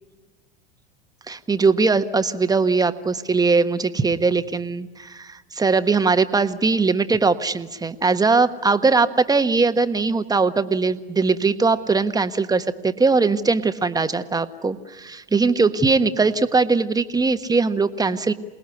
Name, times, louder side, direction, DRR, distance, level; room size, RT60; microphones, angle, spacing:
voice 1, 1.3-18.3, right 4 dB, 10° right, 10 dB, 1.3 m, -20 dB
28.0 x 19.5 x 9.8 m, 1.2 s
hypercardioid pair, 90°, 30 cm